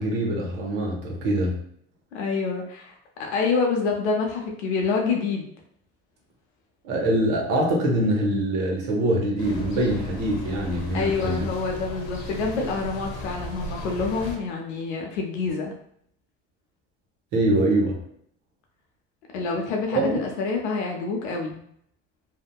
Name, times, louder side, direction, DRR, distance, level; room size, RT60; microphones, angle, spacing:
voice 1, 0.0-1.6 6.8-11.4 17.3-18.0 19.9-20.2, right 1 dB, 70° right, -1 dB, 0.9 m, -24 dB
voice 2, 2.1-5.5 10.9-15.7 19.3-21.6, left 4 dB, 85° left, 1 dB, 0.6 m, -27 dB
sound 1, 9.4-14.4, left 1 dB, 55° left, 0.8 m, -36 dB
2.7 x 2.1 x 2.2 m, 0.68 s
hypercardioid pair, 65°, 33 cm